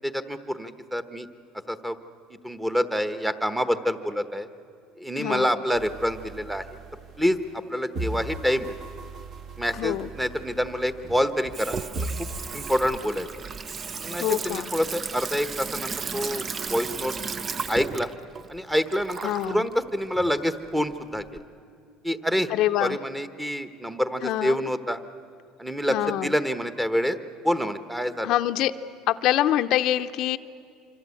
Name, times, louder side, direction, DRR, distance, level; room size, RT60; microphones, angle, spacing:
voice 1, 0.0-1.3 1.7-2.0 2.4-4.5 5.0-6.6 7.2-7.4 7.7-8.7 9.6-12.3 12.5-13.3 14.0-17.1 17.7-18.1 18.5-19.2 19.5-21.2 22.0-22.5 22.8-25.0 25.6-26.0 26.2-27.2 27.4-28.3, equal, 5° right, 10 dB, 1.1 m, -27 dB
voice 2, 5.2-5.5 9.7-10.1 14.2-14.7 19.2-19.7 22.5-23.0 24.2-24.6 25.9-26.4 28.2-28.7 29.1-30.4, left 13 dB, 60° left, 8 dB, 0.7 m, -25 dB
sound 1, 5.7-7.6 7.9-11.6 11.9-12.9, right 2 dB, 45° right, 1.8 m, -38 dB
Water tap faucet / Sink (filling or washing), 9.7-21.4, right 5 dB, 30° right, 0.6 m, -35 dB
26.0 x 25.5 x 8.4 m, 2.3 s
supercardioid pair, 115°, 0 cm